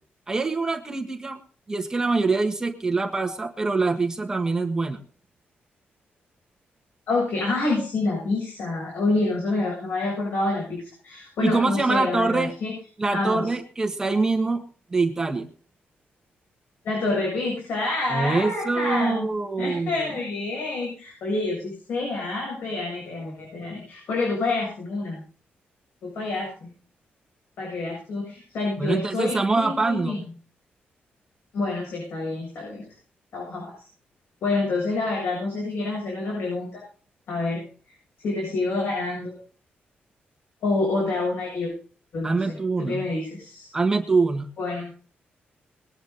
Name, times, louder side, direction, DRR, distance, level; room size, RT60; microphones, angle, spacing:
voice 1, 0.3-1.4 1.7-5.0 11.4-12.5 13.0-14.6 14.9-15.5 18.1-20.1 28.8-30.3 42.2-43.0 43.7-44.5, right 3 dB, 15° right, 3 dB, 1.6 m, -24 dB
voice 2, 7.1-12.7 13.1-13.5 16.8-19.3 19.6-25.2 26.0-26.7 27.6-30.2 31.5-32.8 33.3-33.9 34.4-36.8 37.3-37.6 38.2-39.3 40.6-41.7 42.1-43.7 44.6-44.9, left 3 dB, 75° left, -2 dB, 7.9 m, -27 dB
21.0 x 9.5 x 4.0 m, 0.41 s
wide cardioid pair, 175°, 4 cm